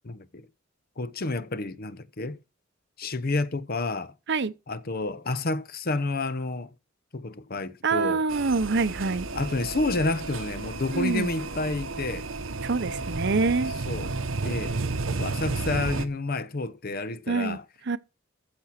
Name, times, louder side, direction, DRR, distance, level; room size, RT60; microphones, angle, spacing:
voice 1, 0.0-0.5 1.0-2.4 3.0-4.1 4.7-6.7 7.1-8.2 9.3-12.3 13.9-14.1 14.4-14.8 15.2-17.6, left 2 dB, 50° left, 0.8 m, -30 dB
voice 2, 7.8-9.3 10.9-11.3 12.6-13.7 17.3-18.0, right 4 dB, 60° right, 0.8 m, -26 dB
sound 1, 8.3-16.1, right 3 dB, 90° right, 1.1 m, -32 dB
14.5 x 6.0 x 5.9 m
head